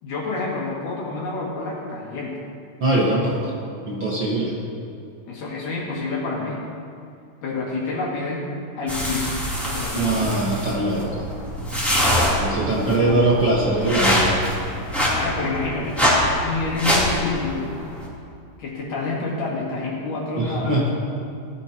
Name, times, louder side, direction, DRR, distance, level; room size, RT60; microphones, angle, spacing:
voice 1, 0.0-2.4 5.3-6.6 7.4-10.7 12.6-13.4 15.1-16.1 16.4-17.6 18.6-20.9, left 3 dB, 75° left, -4 dB, 3.8 m, -28 dB
voice 2, 2.8-3.4 3.9-4.5 9.9-11.0 12.4-14.4 20.4-20.9, right 2 dB, 45° right, -5 dB, 1.7 m, -21 dB
sound 1, 8.9-18.0, equal, ahead, 2.8 m, -24 dB
17.5 x 12.0 x 3.0 m, 2.5 s
omnidirectional pair, 3.8 m